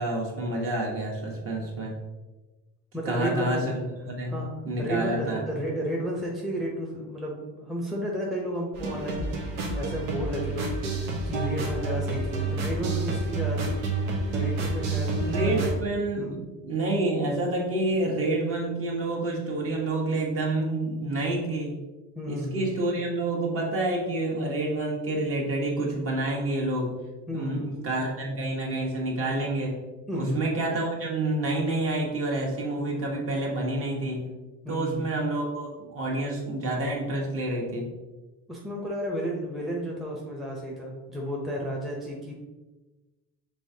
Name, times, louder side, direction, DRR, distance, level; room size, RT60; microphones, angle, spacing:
voice 1, 0.0-1.9 3.0-3.7 4.1-4.4 4.6-5.4 15.2-21.8 22.3-26.9 27.3-29.8 30.1-34.3 34.7-37.9, right 2 dB, 40° right, -2 dB, 1.3 m, -28 dB
voice 2, 2.9-3.7 4.3-4.5 4.8-13.8 14.3-15.1 15.4-15.7 16.2-16.4 22.2-22.8 27.3-27.9 30.1-30.4 34.6-35.2 38.5-42.4, equal, ahead, -3 dB, 0.7 m, -32 dB
sound 1, 8.7-15.7, right 3 dB, 85° right, 1.1 m, -29 dB
5.5 x 3.4 x 2.7 m, 1.2 s
cardioid pair, 115°, 34 cm